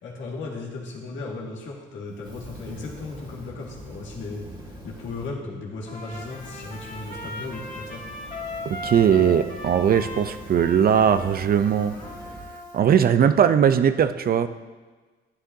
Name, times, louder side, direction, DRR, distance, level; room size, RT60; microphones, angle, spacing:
voice 1, 0.0-8.0, left 3 dB, 75° left, -2 dB, 1.9 m, -36 dB
Fire, 2.2-5.3 5.8-12.8, equal, 25° right, 1.7 m, -43 dB
Trumpet, 5.9-12.9, left 2 dB, 40° left, 2.2 m, -38 dB
voice 2, 8.7-11.9 12.7-14.5, right 8 dB, 50° right, 11 dB, 0.5 m, -19 dB
11.5 x 8.8 x 2.7 m, 1.3 s
cardioid pair, 90°, 20 cm